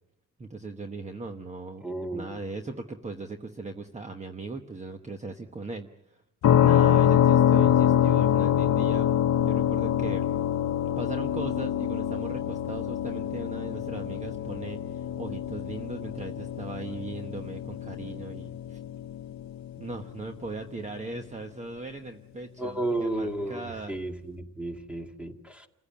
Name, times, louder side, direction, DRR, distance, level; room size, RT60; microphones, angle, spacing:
voice 1, 0.4-1.9 2.1-6.2 6.6-9.1 9.4-10.3 11.0-18.8 19.8-24.0, right 3 dB, 20° right, 6 dB, 1.2 m, -38 dB
voice 2, 1.8-2.3 22.6-25.7, right 2 dB, 5° right, 5 dB, 2.1 m, -33 dB
sound 1, 6.4-20.1, left 10 dB, 60° left, 0.9 m, -25 dB
29.5 x 15.5 x 8.7 m, 0.81 s
cardioid pair, 145°, 31 cm